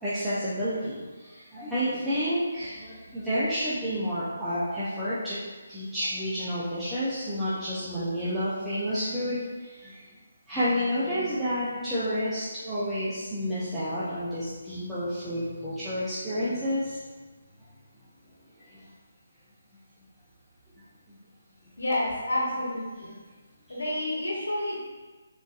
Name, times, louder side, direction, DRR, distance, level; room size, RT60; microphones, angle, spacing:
voice 1, 0.0-5.4 5.7-10.0 10.5-17.0 18.6-18.8 21.1-21.2, equal, 5° right, -15 dB, 0.6 m, -30 dB
voice 2, 21.8-23.2 23.7-24.8, left 1 dB, 80° left, -4 dB, 1.1 m, -29 dB
3.7 x 2.5 x 2.5 m, 1.4 s
figure-of-eight pair, 150°, 0 cm